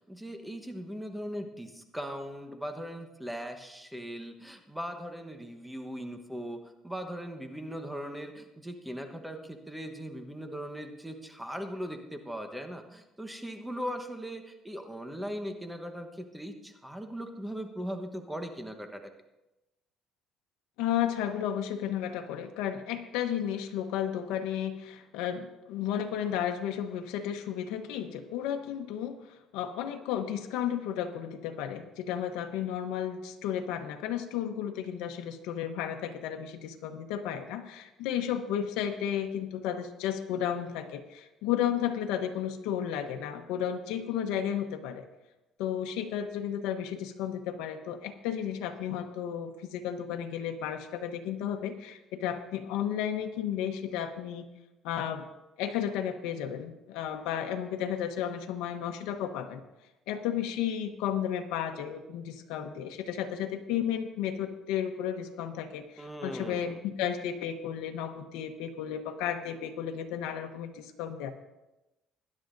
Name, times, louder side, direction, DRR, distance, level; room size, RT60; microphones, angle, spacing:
voice 1, 0.1-19.0 66.0-66.8, equal, 5° right, 5 dB, 1.1 m, -39 dB
voice 2, 20.8-45.1 45.6-54.4 54.8-55.3 55.6-59.6 60.1-71.3, left 9 dB, 90° left, 5 dB, 0.9 m, -33 dB
20.0 x 10.5 x 2.6 m, 0.98 s
cardioid pair, 115°, 0 cm